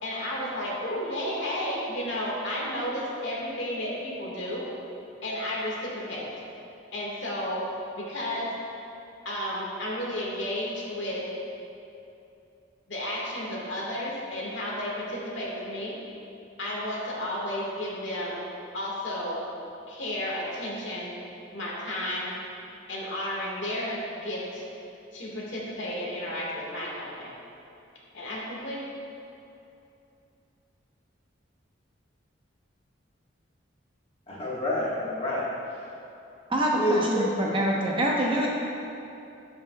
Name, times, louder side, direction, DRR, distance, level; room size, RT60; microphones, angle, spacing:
voice 1, 0.0-4.7 5.2-6.3 6.9-7.7 7.9-8.5 9.2-11.3 12.9-15.9 16.6-18.4 18.7-19.4 19.9-21.1 21.5-22.3 22.9-24.6 25.1-27.3 28.1-28.8, left 1 dB, 75° left, -4 dB, 1.7 m, -32 dB
voice 2, 34.3-35.5 36.7-37.5, left 1 dB, 30° left, -6 dB, 1.4 m, -28 dB
voice 3, 36.5-38.5, right 1 dB, 25° right, -3 dB, 0.8 m, -25 dB
13.0 x 5.5 x 2.3 m, 2.8 s
head